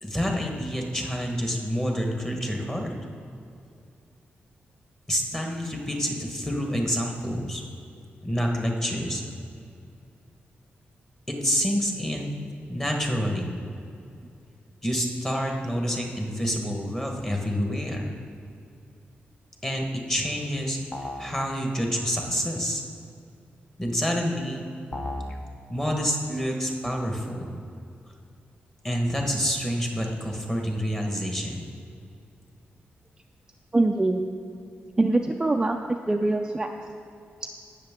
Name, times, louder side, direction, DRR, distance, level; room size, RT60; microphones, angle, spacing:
voice 1, 0.0-2.9 5.1-7.6 8.2-9.2 11.3-12.3 12.7-13.5 14.8-18.1 19.6-20.8 21.2-22.8 23.8-24.7 25.7-27.5 28.8-31.7, equal, 15° left, 1 dB, 1.4 m, -28 dB
sound 1, 20.9-21.4 24.9-25.4, left 1 dB, 35° left, 0.9 m, -34 dB
voice 2, 33.7-34.2 35.0-35.8 36.1-36.7, right 2 dB, 15° right, 3 dB, 0.4 m, -23 dB
17.5 x 6.5 x 3.7 m, 2.6 s
wide cardioid pair, 135°, 4 cm